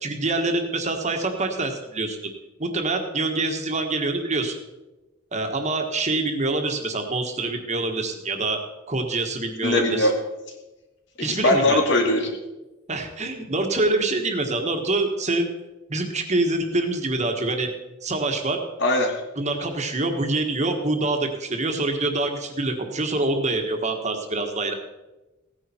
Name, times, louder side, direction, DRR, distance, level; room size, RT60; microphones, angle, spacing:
voice 1, 0.0-2.2 2.6-4.5 5.3-8.6 8.9-10.1 11.2-11.8 12.9-15.5 15.9-17.7 18.0-18.6 19.4-24.7, right 2 dB, 35° right, 4 dB, 1.5 m, -25 dB
voice 2, 9.6-10.1 11.2-12.3 18.8-19.1, left 1 dB, 65° left, 2 dB, 2.5 m, -20 dB
16.5 x 9.8 x 4.5 m, 1.1 s
head